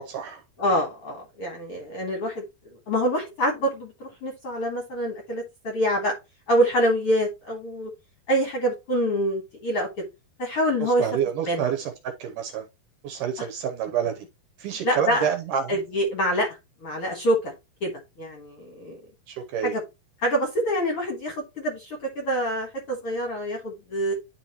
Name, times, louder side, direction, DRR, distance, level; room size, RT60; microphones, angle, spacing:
voice 1, 0.0-0.4 1.7-1.9 10.8-12.7 13.0-14.3 14.6-15.8 19.3-19.7, right 8 dB, 75° right, 2.0 m, -28 dB
voice 2, 0.6-2.4 2.9-6.2 6.5-7.9 8.3-10.1 10.4-11.1 11.4-11.6 13.4-13.5 14.8-15.3 15.7-17.5 17.8-19.0 19.6-19.8 20.2-24.1, equal, 60° left, 1.5 m, -26 dB
10.5 x 4.3 x 3.0 m
omnidirectional pair, 4.4 m